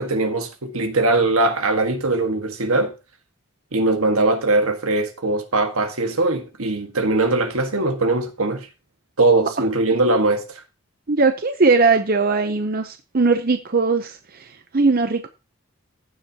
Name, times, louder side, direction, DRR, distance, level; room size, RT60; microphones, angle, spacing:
voice 1, 0.0-2.9 3.7-8.7 9.2-10.6, right 2 dB, 80° right, 1.6 m, -21 dB
voice 2, 11.1-14.2 14.7-15.3, right 4 dB, 45° right, 0.7 m, -19 dB
15.0 x 7.5 x 2.9 m
head